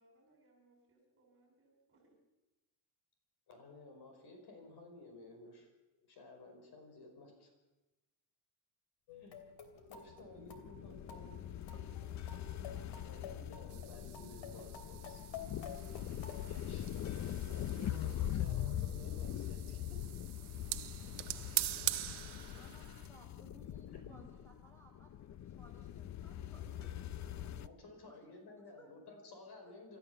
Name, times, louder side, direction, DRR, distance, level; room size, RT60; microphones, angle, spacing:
voice 1, 0.0-2.2 22.1-22.6, right 2 dB, 30° right, 1 dB, 7.0 m, -70 dB
voice 2, 3.5-5.7 6.1-7.5 9.1-9.4 9.9-11.5 13.0-15.2 16.5-16.9 17.5-20.0 24.0-24.3 27.6-30.0, left 2 dB, 60° left, 4 dB, 5.2 m, -55 dB
sound 1, 9.1-16.5, left 6 dB, 90° left, 3.1 m, -51 dB
sound 2, 10.1-27.7, left 11 dB, 40° left, 0.6 m, -42 dB
sound 3, 13.7-23.1, right 15 dB, 65° right, 0.9 m, -44 dB
voice 3, 22.5-27.6 28.0-28.9 29.6-29.7, right 1 dB, 5° left, 1 dB, 5.5 m, -62 dB
27.0 x 13.5 x 7.0 m, 1.0 s
cardioid pair, 165°, 43 cm